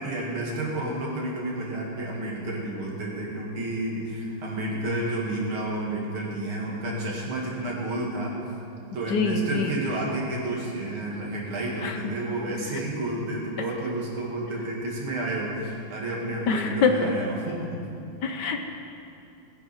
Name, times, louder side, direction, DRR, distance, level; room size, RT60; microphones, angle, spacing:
voice 1, 0.0-8.3 8.9-17.8, right 1 dB, 85° right, -3 dB, 3.2 m, -30 dB
voice 2, 9.1-9.7 11.8-12.0 16.5-17.1 18.2-18.7, left 4 dB, 60° left, 5 dB, 1.4 m, -25 dB
21.5 x 9.5 x 4.5 m, 2.6 s
omnidirectional pair, 2.2 m